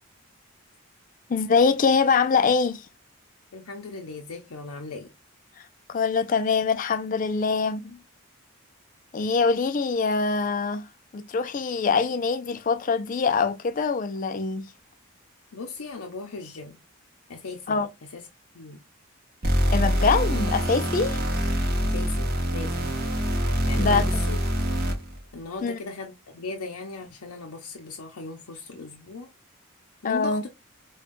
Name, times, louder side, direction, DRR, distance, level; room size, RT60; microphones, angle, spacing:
voice 1, 1.3-2.9 5.9-8.0 9.1-10.9 11.1-14.7 17.7-17.9 19.7-21.2 23.8-24.0 25.6-25.8 30.0-30.4, left 5 dB, 35° left, 0.3 m, -24 dB
voice 2, 3.5-5.1 15.5-16.8 17.3-17.8 18.1-18.3 18.5-18.8 21.8-22.9 23.6-24.4 25.3-29.3 30.0-30.5, left 3 dB, 85° left, 0.6 m, -37 dB
sound 1, 19.4-25.2, equal, 40° right, 0.8 m, -25 dB
5.1 x 2.2 x 2.5 m
head